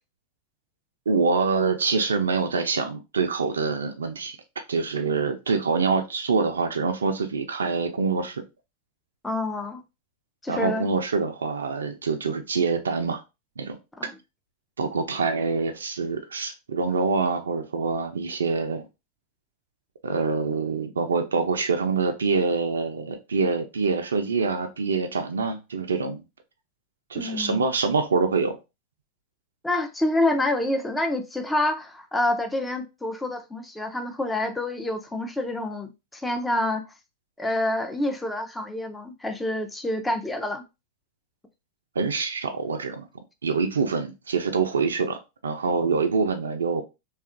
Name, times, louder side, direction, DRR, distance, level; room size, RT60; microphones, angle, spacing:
voice 1, 1.1-8.4 10.5-13.2 13.6-13.8 14.8-18.9 20.0-26.2 27.1-28.6 42.0-43.1 43.4-46.8, right 4 dB, 90° right, 0.4 m, -25 dB
voice 2, 9.2-9.8 10.4-10.9 14.0-14.1 27.1-27.7 29.6-36.9 37.4-40.6, left 1 dB, 10° left, 0.5 m, -27 dB
2.7 x 2.3 x 2.4 m
hypercardioid pair, 105°, 0 cm